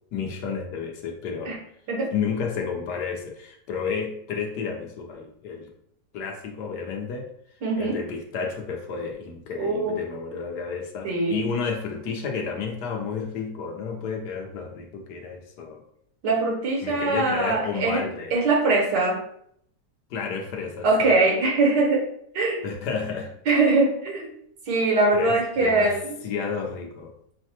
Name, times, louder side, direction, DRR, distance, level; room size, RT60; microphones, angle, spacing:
voice 1, 0.1-1.5 2.1-5.7 6.1-7.3 7.8-15.8 16.8-18.3 20.1-21.1 22.6-23.3 25.1-25.9 26.2-27.1, left 5 dB, 80° left, 3 dB, 1.3 m, -31 dB
voice 2, 7.6-8.0 9.6-10.0 11.0-11.4 16.2-19.2 20.8-22.1 22.3-22.6 23.5-24.3 24.7-26.1, right 3 dB, 80° right, -1 dB, 1.7 m, -22 dB
6.5 x 2.2 x 2.8 m, 0.69 s
omnidirectional pair, 1.8 m